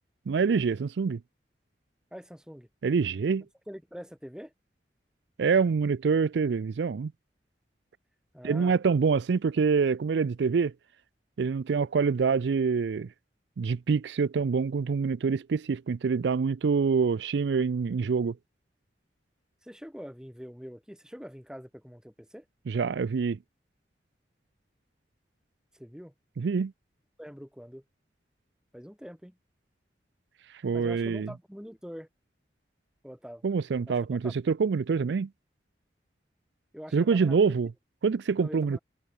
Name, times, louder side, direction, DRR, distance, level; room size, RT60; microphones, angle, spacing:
voice 1, 0.3-1.2 2.8-3.4 5.4-7.1 8.4-10.7 11.4-13.1 13.6-18.3 22.7-23.4 26.4-26.7 30.6-31.3 33.4-35.3 36.9-37.7 38.0-38.8, right 5 dB, 80° right, 0.4 m, -26 dB
voice 2, 2.1-2.7 3.7-4.5 8.3-8.8 19.6-22.4 25.7-26.1 27.2-27.8 28.7-29.3 30.7-32.1 33.0-33.4 33.9-34.3 36.7-37.5 38.4-38.8, equal, 5° right, 5.0 m, -44 dB
head